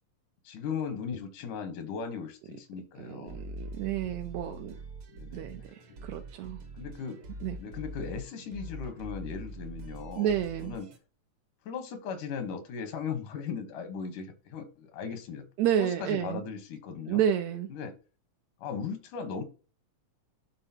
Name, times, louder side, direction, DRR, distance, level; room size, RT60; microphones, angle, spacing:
voice 1, 0.4-3.4 5.1-5.4 6.7-7.2 7.6-10.3 10.6-10.9 11.7-15.5 15.8-17.2 17.7-18.0 18.6-19.4, left 6 dB, 85° left, 2.6 m, -37 dB
voice 2, 3.0-4.8 5.3-6.6 7.4-7.6 10.2-10.7 15.6-16.4 17.1-17.7, right 9 dB, 75° right, 1.7 m, -30 dB
sound 1, 3.3-11.0, right 1 dB, 60° right, 1.5 m, -43 dB
12.0 x 4.0 x 2.8 m
omnidirectional pair, 3.6 m